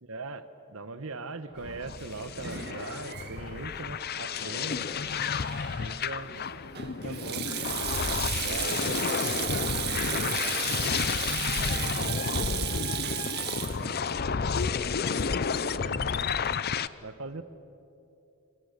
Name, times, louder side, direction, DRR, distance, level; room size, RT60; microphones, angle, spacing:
voice 1, 0.0-4.9 5.8-6.3 6.8-7.4 8.4-9.0 12.0-12.2 15.7-16.3 17.0-17.4, right 3 dB, 65° right, 11 dB, 1.3 m, -40 dB
sound 1, 1.6-16.9, left 6 dB, 45° left, 0.6 m, -31 dB
Sink (filling or washing), 1.6-15.3, right 10 dB, 45° right, 1.6 m, -36 dB
voice 2, 4.4-4.9 7.0-7.3 8.1-11.0 11.5-12.6 12.9-16.0, equal, 30° right, -1 dB, 4.5 m, -44 dB
28.0 x 25.0 x 6.8 m, 2.9 s
head